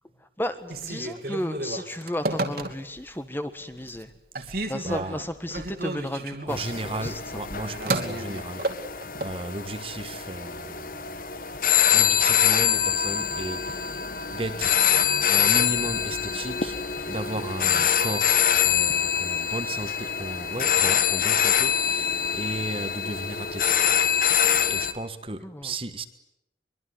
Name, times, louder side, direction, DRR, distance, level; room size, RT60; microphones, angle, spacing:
voice 1, 0.2-4.1 4.6-7.2 25.4-25.7, left 1 dB, 10° left, 1.6 m, -33 dB
Telephone, 0.6-3.1 3.6-4.1 4.3-9.4, right 2 dB, 55° right, 2.8 m, -32 dB
voice 2, 4.3-5.2 6.5-8.7 9.2-11.1 11.9-14.0 14.3-14.9 15.3-23.9 24.7-26.0, right 2 dB, 30° right, 1.5 m, -35 dB
sound 1, 6.5-24.9, left 9 dB, 50° left, 1.4 m, -24 dB
23.5 x 23.5 x 9.7 m
head